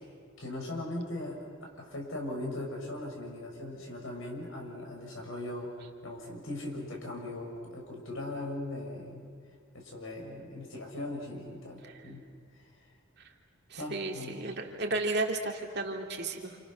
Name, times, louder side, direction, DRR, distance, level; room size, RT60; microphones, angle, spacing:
voice 1, 0.4-5.7 6.0-9.3 9.7-12.2 12.5-12.6 13.8-14.3, left 1 dB, 85° left, 0 dB, 6.3 m, -39 dB
voice 2, 13.7-16.6, right 2 dB, 55° right, 2 dB, 2.7 m, -33 dB
29.0 x 28.0 x 6.5 m, 2.2 s
head